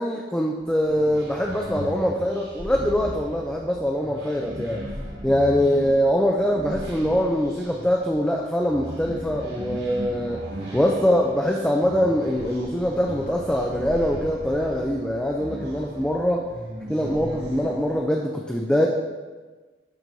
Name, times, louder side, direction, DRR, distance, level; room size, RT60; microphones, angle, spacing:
voice 1, 0.0-4.8 5.2-10.4 10.7-16.5 16.9-18.9, equal, 5° left, 0 dB, 0.4 m, -23 dB
sound 1, 0.6-18.0, equal, 85° right, 2.3 m, -37 dB
12.0 x 4.3 x 2.7 m, 1.3 s
head